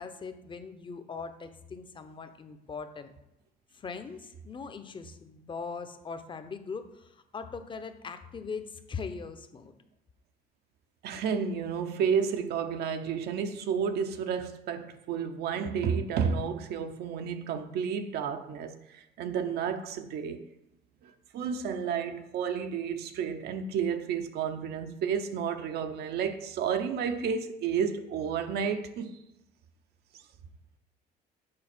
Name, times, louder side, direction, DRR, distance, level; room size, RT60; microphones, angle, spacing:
voice 1, 0.0-3.1 3.7-9.7, left 5 dB, 30° left, 0.8 m, -40 dB
voice 2, 11.0-20.5 21.0-29.2, right 7 dB, 70° right, 0.8 m, -31 dB
7.7 x 4.3 x 6.0 m
cardioid pair, 110°, 17 cm